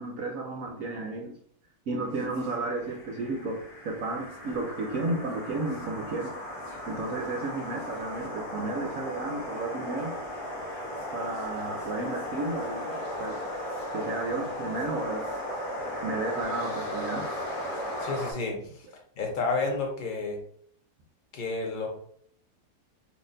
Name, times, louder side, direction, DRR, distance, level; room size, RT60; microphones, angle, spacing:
voice 1, 0.0-1.3 1.9-6.3 6.9-10.1 11.1-13.5 13.9-15.3 16.0-17.3, right 2 dB, 65° right, 1 dB, 1.0 m, -33 dB
sound 1, 2.2-18.3, left 1 dB, 60° left, 1.4 m, -36 dB
voice 2, 18.0-18.9 19.2-20.4 21.3-21.9, left 3 dB, 45° left, 1 dB, 0.7 m, -30 dB
4.1 x 2.9 x 2.5 m, 0.62 s
omnidirectional pair, 1.7 m